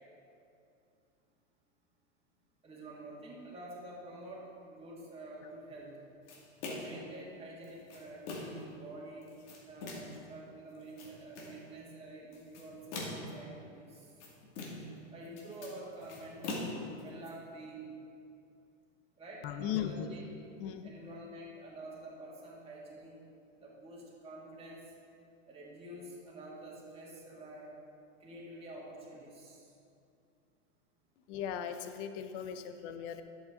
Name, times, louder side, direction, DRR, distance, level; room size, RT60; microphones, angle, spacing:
voice 1, 2.6-5.9 6.6-9.3 9.6-14.1 15.1-16.7 17.0-17.9 19.2-20.2 20.8-23.2 23.6-24.8 25.5-27.7 28.2-29.7, right 1 dB, 15° right, -5 dB, 2.3 m, -48 dB
sound 1, 6.3-7.0 7.6-8.7 9.2-10.2 10.7-11.6 12.3-13.4 13.9-15.0 15.2-17.3, left 2 dB, 70° left, 2.5 m, -42 dB
voice 2, 19.4-20.2 20.6-20.9 31.3-33.2, left 9 dB, 45° left, 9 dB, 0.8 m, -37 dB
11.0 x 8.3 x 3.8 m, 2.5 s
supercardioid pair, 135°, 37 cm